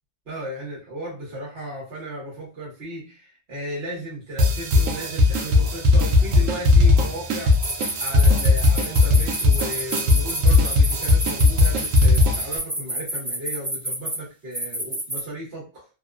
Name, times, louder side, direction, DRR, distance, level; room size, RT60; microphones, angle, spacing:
voice 1, 0.3-7.6 8.0-15.8, right 1 dB, 55° right, -4 dB, 1.2 m, -35 dB
sound 1, 4.4-12.6, left 3 dB, 75° right, 1.0 m, -18 dB
sound 2, 7.5-14.2 14.5-15.2, right 1 dB, 5° right, 0.7 m, -28 dB
2.9 x 2.1 x 2.3 m, 0.31 s
omnidirectional pair, 1.3 m